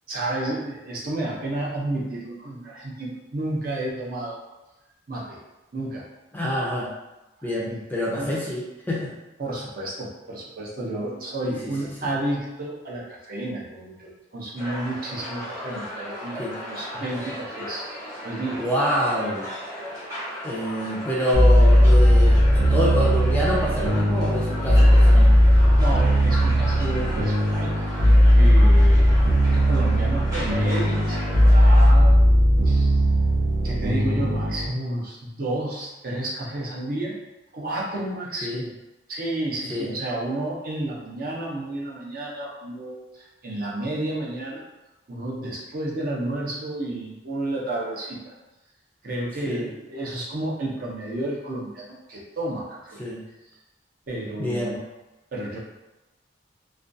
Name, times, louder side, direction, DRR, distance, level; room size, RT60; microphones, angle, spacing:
voice 1, 0.1-4.4 5.1-5.4 5.7-6.1 7.4-7.8 8.1-8.4 9.4-17.9 18.2-18.6 25.8-32.2 32.6-33.3 33.6-37.1 37.5-38.7 39.1-44.6 45.1-48.3 49.0-53.0 54.1-54.8 55.3-55.6, right 1 dB, 50° right, -4 dB, 0.5 m, -31 dB
voice 2, 6.3-6.9 7.4-9.1 11.5-11.7 12.0-12.1 16.4-16.5 18.6-19.5 20.4-22.5 22.7-25.3 38.4-38.6 39.7-39.9 49.4-49.7 53.0-53.2 54.4-54.8, equal, 10° left, -5 dB, 0.4 m, -26 dB
sound 1, 14.6-31.9, equal, 20° right, 0.9 m, -36 dB
sound 2, 21.3-34.7, equal, 80° right, 0.8 m, -17 dB
2.4 x 2.2 x 2.5 m, 1.0 s
head